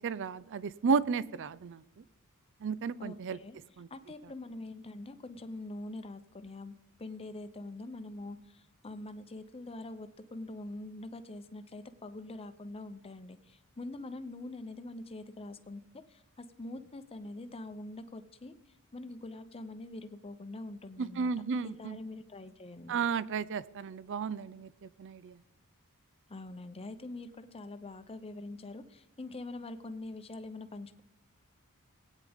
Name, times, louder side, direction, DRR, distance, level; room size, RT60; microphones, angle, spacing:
voice 1, 0.0-2.0 2.6-3.4 3.8-3.9 21.0-22.0 22.9-25.4, right 5 dB, 55° right, 18 dB, 0.4 m, -33 dB
voice 2, 3.0-3.6 3.9-18.6 18.9-21.3 21.6-23.0 26.3-31.0, left 2 dB, 25° left, 11 dB, 0.7 m, -44 dB
19.5 x 9.1 x 3.6 m, 0.88 s
head